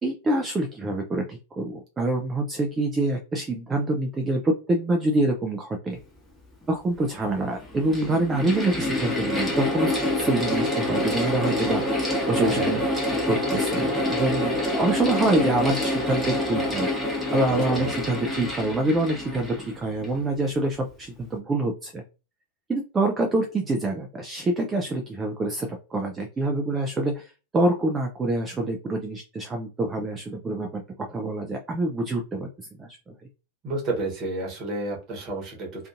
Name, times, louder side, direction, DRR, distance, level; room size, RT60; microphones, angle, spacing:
voice 1, 0.0-6.0 6.7-12.8 13.1-16.9 17.3-22.0 22.7-33.1, right 2 dB, 15° right, 2 dB, 0.4 m, -26 dB
Mechanical fan, 6.6-6.7 7.6-20.2, left 1 dB, 5° left, 1.0 m, -26 dB
voice 2, 12.4-12.8 17.7-17.9 33.6-35.9, right 2 dB, 35° right, -1 dB, 1.1 m, -30 dB
2.5 x 2.3 x 2.5 m, 0.32 s
figure-of-eight pair, 90°, 0 cm